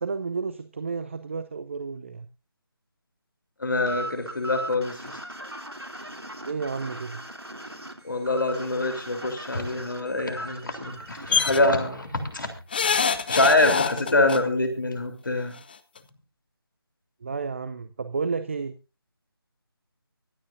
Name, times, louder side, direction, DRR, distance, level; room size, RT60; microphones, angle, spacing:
voice 1, 0.0-2.3 6.4-7.2 17.2-18.8, right 5 dB, 30° right, 12 dB, 0.7 m, -31 dB
voice 2, 3.6-5.1 8.0-12.5 13.3-15.6, left 2 dB, 55° left, 6 dB, 3.6 m, -25 dB
sound 1, 3.9-11.3, right 1 dB, 90° right, 3.1 m, -38 dB
sound 2, 11.3-11.6 12.7-14.4 15.6-15.7 16.0-16.1, left 6 dB, 25° left, 0.7 m, -24 dB
24.5 x 9.5 x 2.6 m, 0.31 s
figure-of-eight pair, 155°, 13 cm